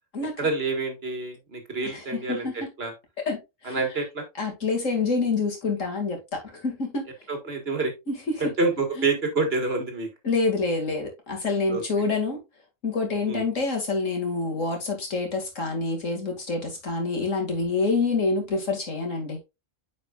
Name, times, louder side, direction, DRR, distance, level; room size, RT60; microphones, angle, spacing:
voice 1, 0.4-2.9 3.6-4.2 7.3-7.9 8.4-10.1 11.7-11.8 13.3-13.4, right 3 dB, 50° right, 1.8 m, -27 dB
voice 2, 1.9-2.5 3.3-3.8 4.4-7.1 8.1-8.4 9.0-9.1 10.2-12.4 12.8-19.4, left 3 dB, 70° left, 2.5 m, -27 dB
9.5 x 5.0 x 2.4 m
omnidirectional pair, 1.4 m